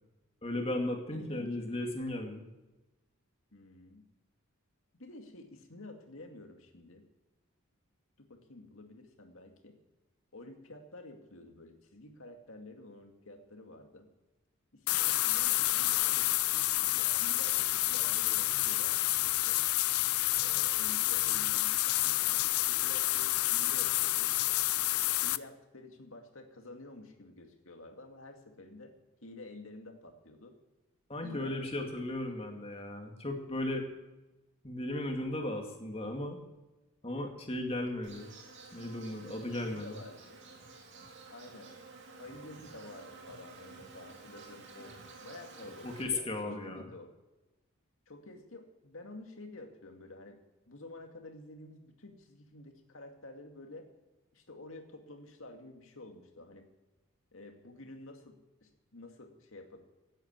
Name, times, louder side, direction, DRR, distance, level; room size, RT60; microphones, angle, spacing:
voice 1, 0.4-2.5 31.1-33.8 34.6-36.4 37.0-38.3 38.7-40.0 45.6-46.8, left 1 dB, 25° left, 3 dB, 2.3 m, -36 dB
voice 2, 1.1-2.2 3.5-4.0 5.0-7.0 8.2-9.8 10.3-14.1 14.7-19.6 20.4-24.3 25.2-28.9 29.2-30.5 31.2-32.0 36.2-36.3 38.6-38.7 39.5-40.4 41.3-41.7 42.2-45.0 45.2-47.1 48.1-50.4 50.7-53.9 54.3-56.7 57.3-58.4 58.6-59.8, left 2 dB, 65° left, 4 dB, 2.3 m, -50 dB
sound 1, 14.9-25.4, left 17 dB, 85° left, 0.5 m, -29 dB
Insect, 38.0-46.0, right 3 dB, 55° right, 2.9 m, -51 dB
16.5 x 9.1 x 7.4 m, 1.1 s
head